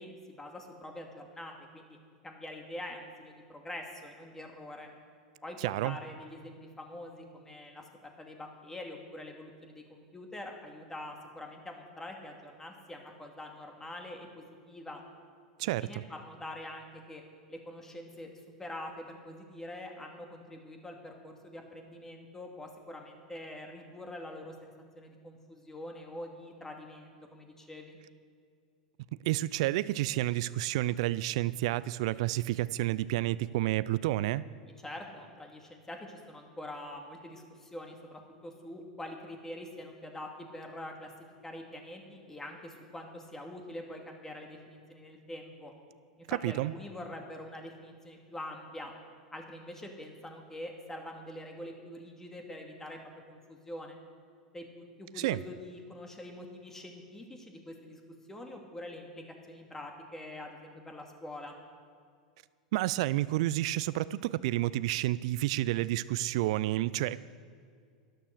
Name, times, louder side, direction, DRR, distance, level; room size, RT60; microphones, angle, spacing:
voice 1, 0.0-2.0 2.2-4.9 5.4-15.0 15.6-17.2 17.5-18.3 18.6-28.0 34.6-41.1 41.4-45.7 46.2-48.9 49.3-53.0 53.3-54.0 54.5-58.0 58.3-61.5, left 1 dB, 10° left, 2 dB, 2.4 m, -45 dB
voice 2, 5.6-6.0 15.6-16.0 29.3-34.4 46.4-46.7 55.2-55.4 62.7-67.2, right 16 dB, 60° right, 18 dB, 0.4 m, -30 dB
12.5 x 11.5 x 6.5 m, 2.2 s
hypercardioid pair, 85°, 4 cm